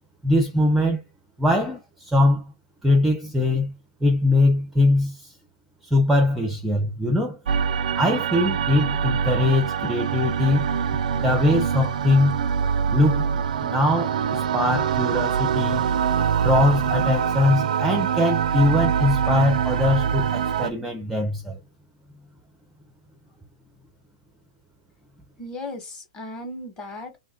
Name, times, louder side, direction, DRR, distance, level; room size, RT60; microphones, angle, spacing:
voice 1, 0.2-1.0 1.4-2.4 2.8-3.7 4.0-5.2 5.9-7.4 8.0-10.7 11.1-12.4 12.9-15.8 16.4-21.6, left 2 dB, 5° right, 0.4 m, -22 dB
sound 1, 7.5-20.7, right 7 dB, 75° right, 0.4 m, -24 dB
voice 2, 25.4-27.2, left 1 dB, 20° left, 1.0 m, -36 dB
2.7 x 2.4 x 4.1 m
hypercardioid pair, 145°, 4 cm